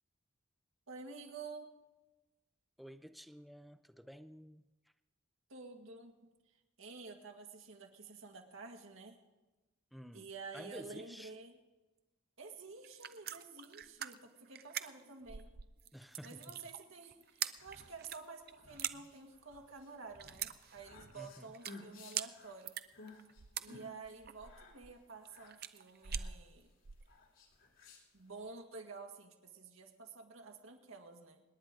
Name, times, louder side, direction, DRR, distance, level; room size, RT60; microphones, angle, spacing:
voice 1, 0.9-1.7 5.5-6.1 6.8-9.2 10.1-11.6 12.4-15.5 16.2-22.8 23.6-26.7 28.1-31.4, right 4 dB, 80° right, 2 dB, 2.0 m, -50 dB
voice 2, 2.8-4.7 9.9-10.3 10.5-11.3 15.9-16.6 21.1-21.5, equal, ahead, 10 dB, 0.5 m, -51 dB
sound 1, 12.8-27.1, right 9 dB, 50° right, 0.6 m, -44 dB
sound 2, 17.3-28.5, left 3 dB, 75° left, 3.0 m, -58 dB
26.5 x 10.5 x 3.8 m, 1.1 s
head